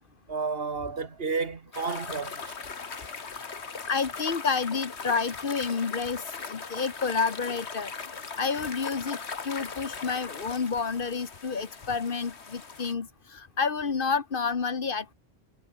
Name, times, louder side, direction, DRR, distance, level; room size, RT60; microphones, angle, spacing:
voice 1, 0.3-2.5, right 4 dB, 65° right, 1.8 m, -31 dB
sound 1, 1.7-12.9, left 5 dB, 85° left, 2.0 m, -39 dB
voice 2, 3.8-7.9 8.4-9.2 9.4-15.1, left 5 dB, 55° left, 1.4 m, -29 dB
omnidirectional pair, 1.1 m